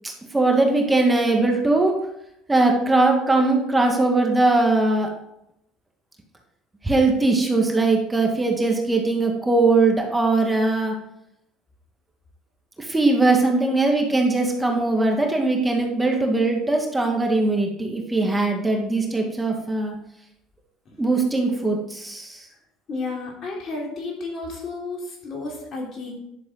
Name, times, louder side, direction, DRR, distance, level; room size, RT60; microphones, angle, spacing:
voice 1, 0.0-1.9 2.5-5.1 6.8-10.9 12.8-20.0 21.0-22.5, right 2 dB, 15° right, 1 dB, 1.9 m, -20 dB
voice 2, 22.9-26.1, left 3 dB, 50° left, -1 dB, 3.5 m, -32 dB
10.5 x 7.0 x 4.0 m, 0.81 s
hypercardioid pair, 70°, 0 cm